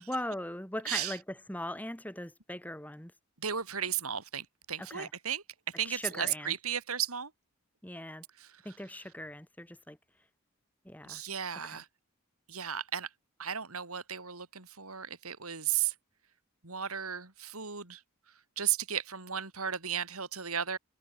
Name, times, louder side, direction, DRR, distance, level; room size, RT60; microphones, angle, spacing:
voice 1, 0.1-3.1 4.9-5.1 5.9-6.6 7.8-8.2 8.6-10.0 10.8-11.2 11.6-11.8, left 1 dB, 5° left, 2.1 m, -39 dB
voice 2, 3.4-5.4 5.8-7.3 8.4-8.5 11.0-11.9 12.5-13.1 13.4-15.9 16.6-18.0 18.6-20.8, right 9 dB, 80° right, 4.2 m, -34 dB
head